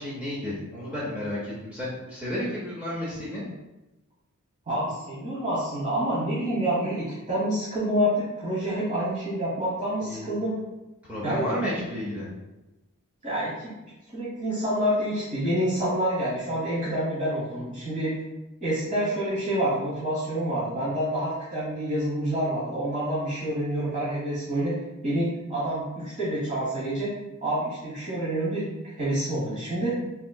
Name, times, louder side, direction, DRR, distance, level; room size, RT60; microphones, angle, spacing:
voice 1, 0.0-3.4 10.0-10.4 11.1-12.3, left 1 dB, 5° right, -9 dB, 0.6 m, -32 dB
voice 2, 4.7-10.5 11.2-11.5 13.2-13.6 14.1-18.2 18.6-24.7 25.0-27.1 27.4-28.7 29.0-30.0, right 1 dB, 35° right, -10 dB, 1.0 m, -27 dB
3.5 x 2.9 x 2.2 m, 1.0 s
head